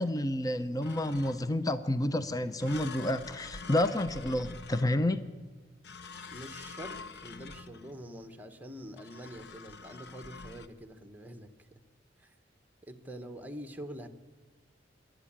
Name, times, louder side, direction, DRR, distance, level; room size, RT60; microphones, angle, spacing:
voice 1, 0.0-5.3, left 1 dB, 20° left, 11 dB, 0.7 m, -30 dB
sound 1, 0.8-1.6 2.6-5.3 5.8-8.1 9.0-10.7, left 4 dB, 65° left, 1.0 m, -46 dB
voice 2, 6.3-11.5 12.2-12.3 12.8-14.1, equal, 10° right, 7 dB, 1.3 m, -45 dB
26.0 x 11.5 x 8.9 m, 1.4 s
head